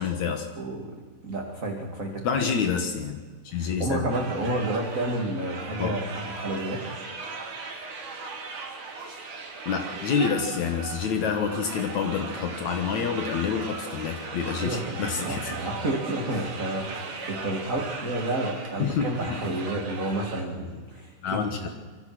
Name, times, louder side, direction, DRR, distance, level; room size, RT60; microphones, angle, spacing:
voice 1, 0.0-0.5 2.2-4.1 5.8-5.9 9.7-15.5 18.8-19.5 21.2-21.7, left 6 dB, 70° left, 5 dB, 2.8 m, -28 dB
voice 2, 0.6-2.3 3.5-6.9 14.6-21.7, right 1 dB, 25° right, 0 dB, 2.8 m, -30 dB
sound 1, 4.1-20.4, right 4 dB, 85° right, 4.4 m, -38 dB
26.5 x 24.0 x 6.2 m, 1.4 s
omnidirectional pair, 3.5 m